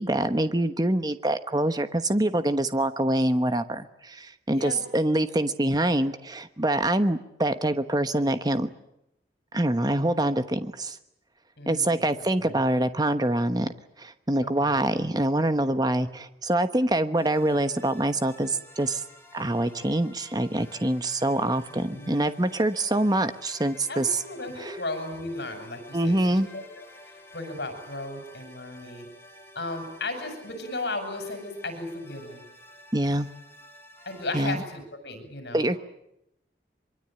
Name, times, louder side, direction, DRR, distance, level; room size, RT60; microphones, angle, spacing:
voice 1, 0.0-8.7 9.5-11.0 11.7-13.7 14.0-19.0 19.3-24.1 24.6-24.8 25.9-26.5 32.9-33.3 34.3-34.6 35.5-35.8, right 1 dB, 20° right, 10 dB, 1.1 m, -25 dB
voice 2, 4.5-4.8 11.6-12.1 12.4-12.6 14.4-14.8 21.7-22.1 23.9-26.8 27.3-29.1 29.5-32.4 34.0-35.7, left 2 dB, 70° left, 6 dB, 6.6 m, -35 dB
sound 1, 17.2-34.7, left 1 dB, 15° left, 3.5 m, -51 dB
23.5 x 23.5 x 9.0 m, 0.83 s
head